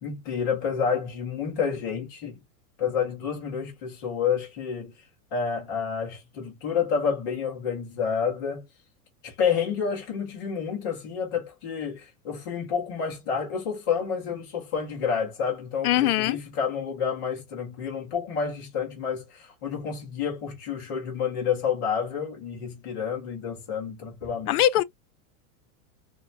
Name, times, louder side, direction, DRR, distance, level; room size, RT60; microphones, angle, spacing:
voice 1, 0.0-2.3 2.8-4.9 5.3-8.6 9.2-24.6, left 6 dB, 15° left, 0.3 m, -29 dB
voice 2, 15.8-16.4 24.5-24.8, left 13 dB, 80° left, 0.5 m, -21 dB
3.0 x 2.1 x 2.4 m
supercardioid pair, 170°, 44 cm